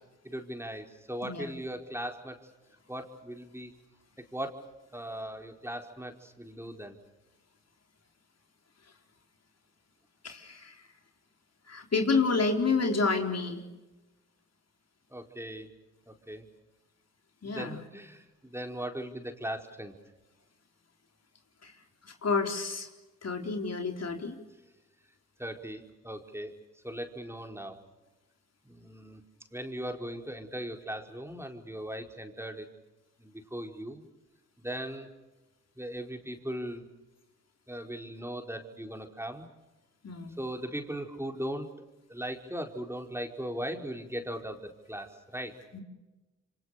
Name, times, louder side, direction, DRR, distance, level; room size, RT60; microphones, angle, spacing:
voice 1, 0.2-2.4 2.9-3.7 4.3-4.6 4.9-7.0 15.1-15.7 16.1-16.4 17.4-19.9 25.4-26.5 26.8-27.8 28.6-29.2 29.5-32.7 33.2-34.0 34.6-35.1 35.8-36.8 37.7-39.5 40.4-41.7 42.1-45.6, right 1 dB, 10° right, 4 dB, 4.8 m, -38 dB
voice 2, 10.2-10.8 11.7-13.6 17.4-17.8 21.6-21.7 22.0-22.9 23.2-24.4 40.0-40.4 45.7-45.8, left 4 dB, 55° left, 4 dB, 4.3 m, -29 dB
27.5 x 25.5 x 6.7 m, 1.1 s
supercardioid pair, 45°, 31 cm